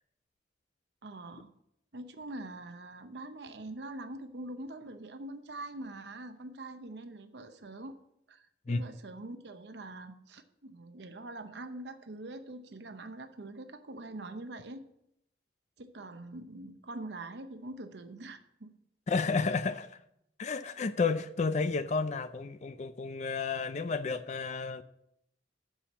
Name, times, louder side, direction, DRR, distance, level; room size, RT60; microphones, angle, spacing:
voice 1, 1.0-1.5 1.9-8.0 8.3-14.8 15.8-18.7, right 2 dB, 65° right, 0.8 m, -44 dB
voice 2, 19.1-20.0 20.4-24.8, left 4 dB, 40° left, 0.4 m, -31 dB
7.2 x 7.0 x 7.3 m
head